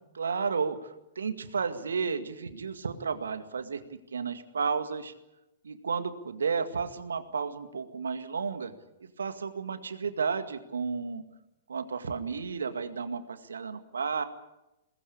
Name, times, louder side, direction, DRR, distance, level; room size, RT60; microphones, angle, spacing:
voice 1, 0.1-0.8 1.2-3.8 4.1-5.1 5.6-8.7 9.2-11.2 11.7-14.2, right 5 dB, 70° right, 9 dB, 2.0 m, -32 dB
22.5 x 20.5 x 8.6 m, 0.93 s
figure-of-eight pair, 110°, 0 cm